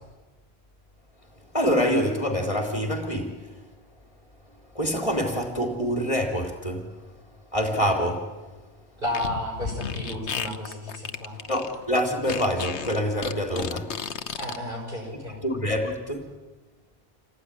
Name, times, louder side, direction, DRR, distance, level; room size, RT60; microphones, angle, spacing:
voice 1, 1.5-3.4 4.8-6.9 7.5-8.3 11.5-14.0 15.4-16.4, equal, 30° left, 3.6 m, -26 dB
Fart, 9.0-14.6, left 7 dB, 85° left, 1.3 m, -33 dB
voice 2, 9.0-11.4 14.4-15.4, left 1 dB, 50° right, 8.2 m, -32 dB
27.5 x 17.5 x 9.9 m
omnidirectional pair, 1.1 m